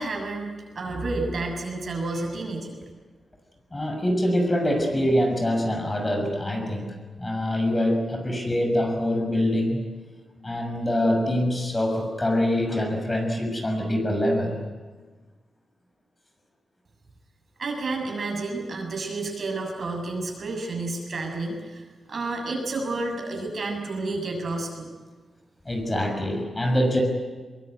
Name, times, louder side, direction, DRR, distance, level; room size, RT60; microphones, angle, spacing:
voice 1, 0.0-2.8 17.6-24.9, right 2 dB, 55° right, 2 dB, 7.2 m, -30 dB
voice 2, 3.7-9.8 10.4-14.6 25.6-27.0, left 1 dB, 20° left, 3 dB, 6.4 m, -24 dB
23.0 x 22.5 x 9.5 m, 1.3 s
wide cardioid pair, 100°, 0 cm